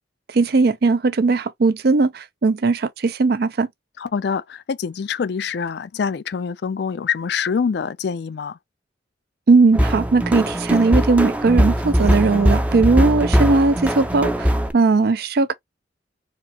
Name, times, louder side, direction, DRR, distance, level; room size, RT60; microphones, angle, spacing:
voice 1, 0.3-3.7 9.5-15.5, right 3 dB, 55° right, 0.5 m, -18 dB
voice 2, 4.0-8.6, left 6 dB, 60° left, 0.4 m, -25 dB
sound 1, 9.7-14.7, equal, 10° right, 0.5 m, -20 dB
4.3 x 3.1 x 2.8 m
head